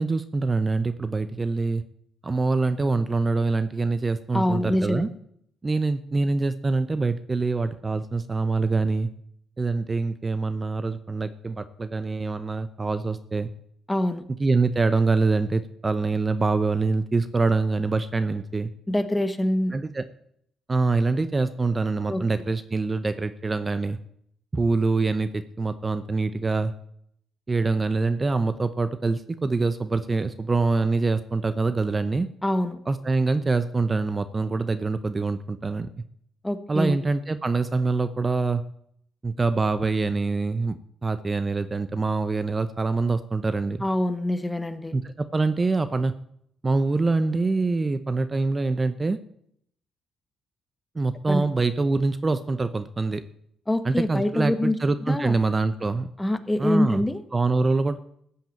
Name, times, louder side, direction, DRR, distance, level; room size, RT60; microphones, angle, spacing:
voice 1, 0.0-1.8 2.2-5.1 5.6-9.1 9.6-13.5 14.4-18.7 19.7-20.1 20.7-24.0 24.5-26.7 27.5-32.3 32.9-35.9 36.7-38.6 39.2-43.8 44.9-46.1 46.6-49.2 50.9-53.2 53.8-56.1 56.6-57.0 57.3-58.0, right 3 dB, 25° right, 11 dB, 0.7 m, -25 dB
voice 2, 4.3-5.0 13.9-14.2 18.9-19.7 22.1-22.2 32.4-32.8 36.4-37.0 43.8-45.0 51.3-51.5 53.7-54.8 55.1-55.4 56.2-57.2, left 1 dB, 10° left, 11 dB, 1.2 m, -25 dB
15.0 x 5.7 x 8.9 m, 0.69 s
cardioid pair, 90°, 0 cm